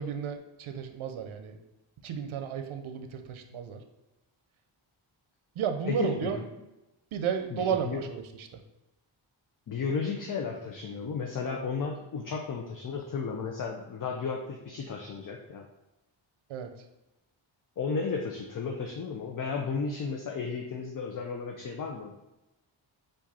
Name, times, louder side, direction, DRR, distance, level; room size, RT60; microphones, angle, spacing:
voice 1, 0.0-1.6 2.0-3.8 5.6-6.4 7.1-8.6 16.5-16.7, right 7 dB, 80° right, 6 dB, 0.7 m, -33 dB
voice 2, 5.9-6.4 7.5-8.0 9.7-15.7 17.8-22.1, left 5 dB, 45° left, 2 dB, 0.6 m, -34 dB
4.8 x 2.5 x 4.1 m, 0.97 s
cardioid pair, 70°, 48 cm